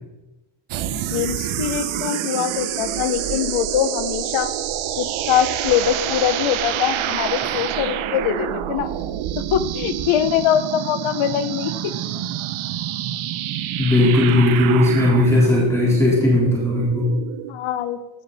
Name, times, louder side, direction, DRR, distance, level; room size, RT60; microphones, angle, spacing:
sound 1, 0.7-17.5, right 11 dB, 85° right, 0.9 m, -27 dB
voice 1, 1.1-4.6 4.9-8.9 9.4-11.9 17.5-18.0, left 10 dB, 90° left, 10 dB, 1.0 m, -23 dB
voice 2, 13.8-17.1, left 2 dB, 5° left, -6 dB, 4.1 m, -17 dB
15.0 x 12.0 x 4.2 m, 1.0 s
cardioid pair, 120°, 47 cm